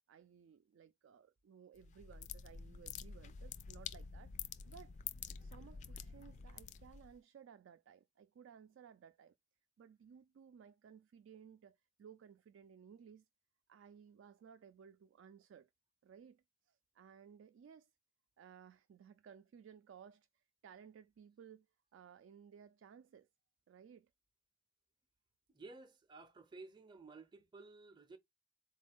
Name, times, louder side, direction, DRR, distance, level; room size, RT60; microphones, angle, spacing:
voice 1, 0.1-4.3 4.6-4.9 5.4-9.3 9.8-13.3 13.7-15.7 16.0-17.9 18.4-21.7 21.9-23.3 23.7-24.1, right 7 dB, 85° right, 0.3 m, -59 dB
sound 1, 1.8-7.2, left 7 dB, 40° left, 0.3 m, -48 dB
voice 2, 25.5-28.2, right 3 dB, 25° right, 0.5 m, -55 dB
4.0 x 2.3 x 3.5 m
head